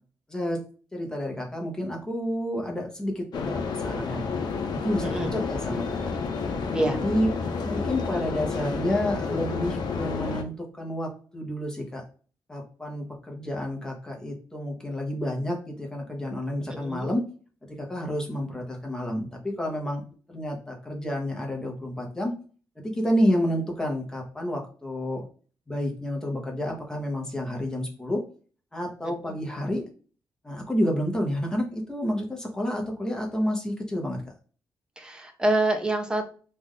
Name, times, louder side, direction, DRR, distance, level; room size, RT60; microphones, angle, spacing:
voice 1, 0.3-0.6 0.9-4.2 4.7-6.1 6.9-7.3 7.6-12.0 12.5-17.2 17.8-20.0 20.3-22.3 22.8-25.2 25.7-28.2 28.7-29.8 30.4-34.2, equal, 10° left, 0 dB, 0.9 m, -29 dB
sound 1, 3.3-10.4, left 4 dB, 75° left, 0.7 m, -30 dB
voice 2, 35.0-36.3, right 2 dB, 10° right, 4 dB, 0.6 m, -26 dB
3.2 x 2.5 x 3.7 m, 0.39 s
wide cardioid pair, 170°, 7 cm